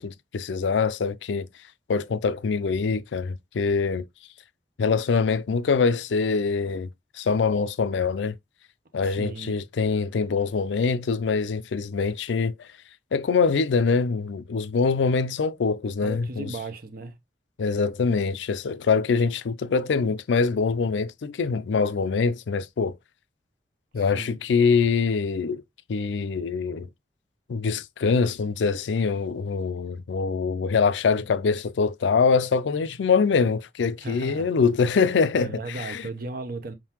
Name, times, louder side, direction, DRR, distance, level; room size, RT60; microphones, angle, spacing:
voice 1, 0.0-1.5 1.9-4.0 4.8-6.9 7.1-8.4 8.9-12.7 13.1-16.5 17.6-22.9 23.9-25.6 25.9-26.9 27.5-36.0, left 5 dB, 80° left, 0.4 m, -24 dB
voice 2, 9.0-9.6 16.0-17.2 24.1-24.3 34.0-34.5 35.4-36.7, right 3 dB, 55° right, 0.8 m, -36 dB
4.6 x 3.8 x 2.9 m
head